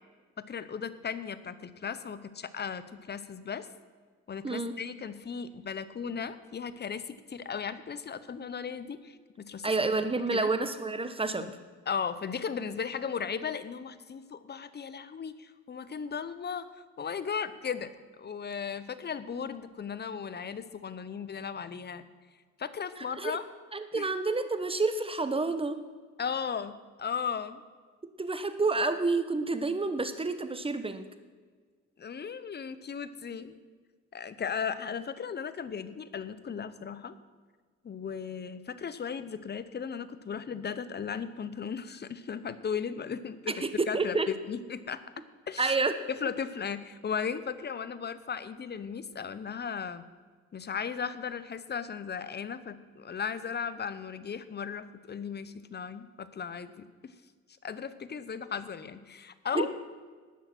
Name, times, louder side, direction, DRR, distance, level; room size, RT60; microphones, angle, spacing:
voice 1, 0.5-3.7 4.3-9.7 10.3-10.5 11.4-11.5 11.9-17.9 18.2-22.0 22.6-23.4 23.9-24.1 26.2-27.6 32.0-33.5 34.1-37.1 37.8-45.0 45.5-45.7 46.1-50.0 50.5-57.1 57.6-59.7, left 6 dB, 35° left, 13 dB, 0.8 m, -36 dB
voice 2, 4.4-4.7 9.6-11.5 23.0-23.4 23.7-25.8 28.2-31.1 43.6-44.3 45.6-45.9 59.5-59.7, right 3 dB, 20° right, 10 dB, 1.1 m, -29 dB
18.5 x 6.5 x 6.1 m, 1.5 s
cardioid pair, 90°, 30 cm